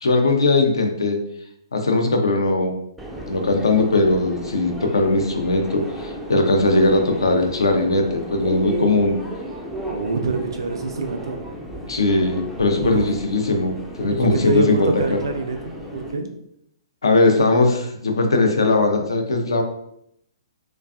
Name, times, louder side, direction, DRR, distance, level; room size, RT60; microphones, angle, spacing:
voice 1, 0.0-1.2 1.7-2.8 3.3-9.2 11.9-15.2 17.0-19.6, left 2 dB, 70° left, 4 dB, 0.5 m, -19 dB
Subway metro underground, 3.0-16.1, equal, 5° right, 0.3 m, -34 dB
voice 2, 9.9-11.4 12.8-13.0 14.1-15.6 15.9-16.3, right 3 dB, 70° right, 4 dB, 0.4 m, -25 dB
2.5 x 2.3 x 2.3 m, 0.76 s
figure-of-eight pair, 125°, 3 cm